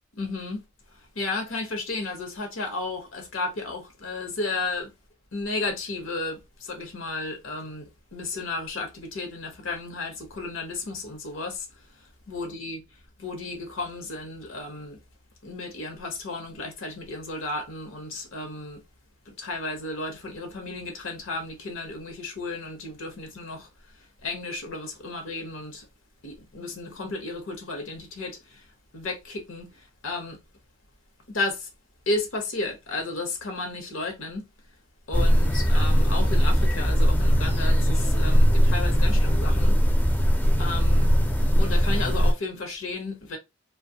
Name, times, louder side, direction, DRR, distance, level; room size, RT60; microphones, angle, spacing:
voice 1, 0.1-0.6 1.1-4.9 5.3-11.7 12.3-12.8 13.2-15.0 15.4-18.8 19.3-23.7 24.2-25.9 26.2-28.6 28.9-29.7 30.0-30.4 31.3-31.7 32.1-34.5 35.1-39.8 40.6-41.1 41.6-43.4, left 2 dB, 85° left, 0.9 m, -33 dB
sound 1, 35.1-42.3, equal, 10° left, 0.4 m, -20 dB
2.5 x 2.2 x 2.7 m
head